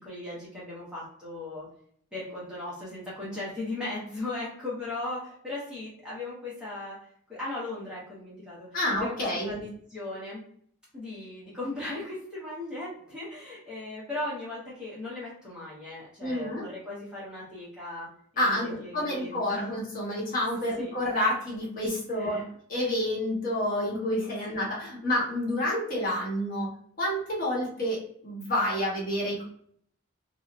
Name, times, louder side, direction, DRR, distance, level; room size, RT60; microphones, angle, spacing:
voice 1, 0.0-1.7 2.1-7.0 7.3-9.2 9.4-10.4 10.9-18.1 18.3-19.8 20.8-20.9 22.1-22.4 24.5-24.6, left 2 dB, 5° right, -8 dB, 0.7 m, -37 dB
voice 2, 8.7-9.6 16.2-16.6 18.4-22.4 22.7-26.7 27.0-29.4, left 1 dB, 40° left, -5 dB, 0.9 m, -29 dB
2.7 x 2.0 x 2.4 m, 0.63 s
head